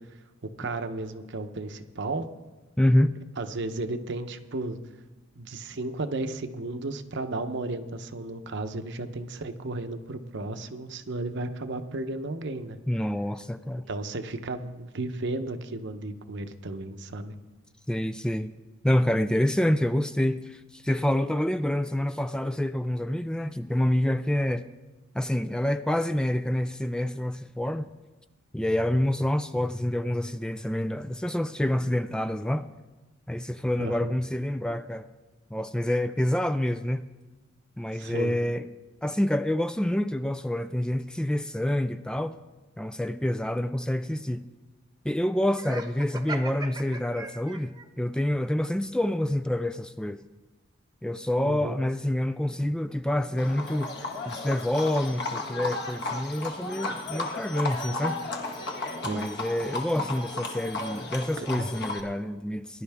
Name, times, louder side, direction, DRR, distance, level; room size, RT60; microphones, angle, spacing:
voice 1, 0.4-2.3 3.4-4.8 5.4-12.8 13.9-17.3 33.8-34.2 37.9-38.4 51.4-51.8 59.0-59.3 61.4-61.7, right 2 dB, 60° right, 0.9 m, -34 dB
voice 2, 2.8-3.1 12.9-13.9 17.9-18.5 18.8-24.7 25.1-27.9 28.5-32.7 33.3-35.0 35.5-37.1 37.8-38.7 39.0-42.3 42.8-44.5 45.0-50.2 51.0-54.0 54.3-58.2 59.0-62.8, left 1 dB, 5° left, 0.3 m, -27 dB
Laughter, 45.5-47.9, right 3 dB, 20° right, 1.0 m, -39 dB
Livestock farm animals working animals, 53.4-62.0, left 2 dB, 55° left, 1.7 m, -34 dB
20.0 x 11.0 x 3.5 m
head